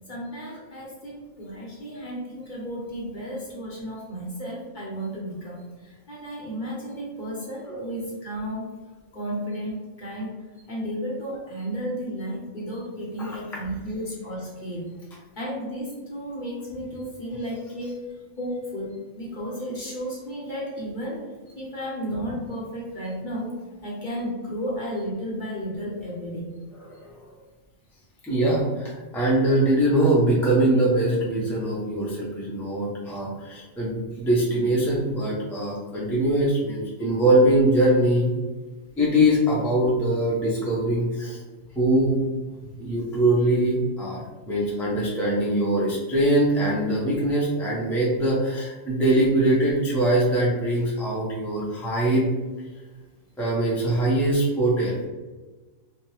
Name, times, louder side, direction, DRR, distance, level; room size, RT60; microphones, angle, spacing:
voice 1, 0.1-8.7 9.1-10.4 10.7-14.9 15.4-18.0 18.4-21.2 21.5-23.5 23.8-26.5 42.6-42.7, equal, 45° left, -5 dB, 0.8 m, -33 dB
voice 2, 28.2-38.3 39.0-41.4 41.7-42.4 42.8-44.2 44.5-52.2 53.4-55.0, right 1 dB, 5° left, -6 dB, 0.3 m, -22 dB
3.0 x 2.1 x 3.0 m, 1.2 s
omnidirectional pair, 1.4 m